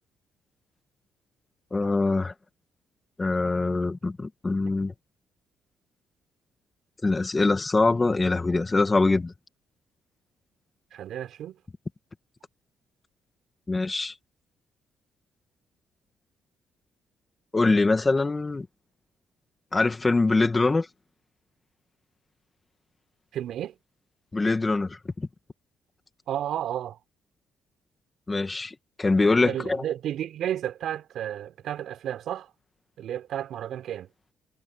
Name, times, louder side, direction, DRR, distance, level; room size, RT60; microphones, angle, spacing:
voice 1, 1.7-2.3 3.2-4.9 7.0-9.3 13.7-14.1 17.5-18.7 19.7-20.9 24.3-25.3 28.3-29.8, left 3 dB, 25° left, 2.0 m, -23 dB
voice 2, 10.9-11.6 23.3-23.8 26.3-27.0 29.4-32.5 33.0-34.1, right 11 dB, 75° right, 4.5 m, -32 dB
cardioid pair, 90°, 0 cm